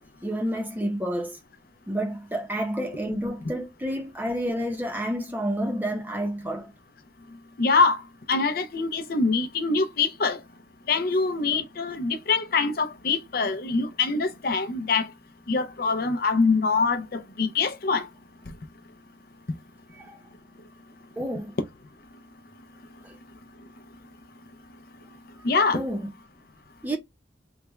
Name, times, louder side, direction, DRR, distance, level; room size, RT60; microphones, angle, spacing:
voice 1, 0.2-1.4 1.9-6.7 19.9-20.2 21.2-21.5 23.0-23.2 25.7-26.1 26.8-27.0, equal, 10° right, 0.7 m, -29 dB
voice 2, 7.6-8.0 8.3-10.4 10.9-15.1 15.5-18.1 25.4-25.8, left 4 dB, 55° left, 0.6 m, -24 dB
3.4 x 2.2 x 3.1 m
head